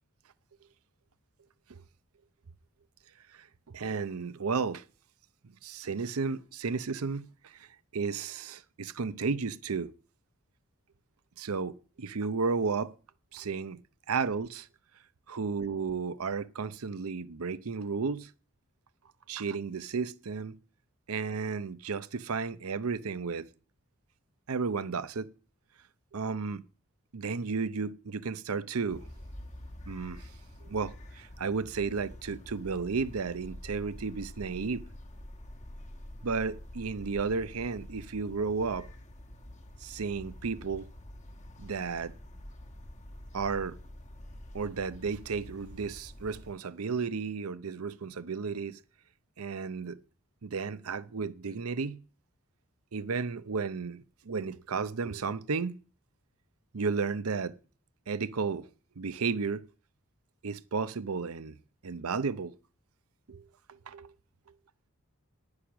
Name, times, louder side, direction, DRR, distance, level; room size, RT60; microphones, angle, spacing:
voice 1, 3.3-4.8 5.6-7.7 7.9-9.9 11.4-12.9 13.3-13.8 14.1-14.7 15.3-18.3 19.3-20.6 21.1-23.5 24.5-25.3 26.1-26.6 27.1-29.0 29.9-30.3 30.6-34.8 36.2-38.9 39.8-40.9 41.6-42.1 43.3-43.8 44.5-48.8 49.4-50.0 50.4-52.0 52.9-55.8 56.7-57.6 58.1-58.7 59.0-59.6 60.4-61.6 61.8-62.5 63.3-63.5 63.9-64.1, right 5 dB, 80° right, 0.7 m, -33 dB
sound 1, 28.9-46.5, left 1 dB, 35° left, 1.1 m, -47 dB
10.5 x 9.8 x 6.0 m
head